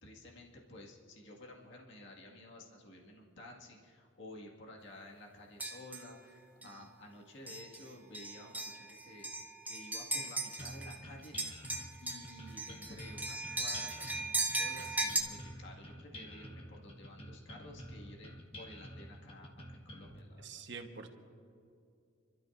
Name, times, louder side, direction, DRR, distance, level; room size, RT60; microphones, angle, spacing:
voice 1, 0.0-9.3 9.6-11.4 12.0-20.4, left 1 dB, 65° left, -1 dB, 2.0 m, -53 dB
sound 1, 5.6-6.1 6.6-6.8 7.5-7.8 8.1-11.0 11.2-15.2, right 2 dB, 10° right, 1.0 m, -37 dB
sound 2, 10.6-20.2, equal, 30° left, 1.4 m, -49 dB
voice 2, 20.4-21.1, right 5 dB, 60° right, 5 dB, 1.3 m, -46 dB
30.0 x 13.0 x 2.6 m, 2.5 s
head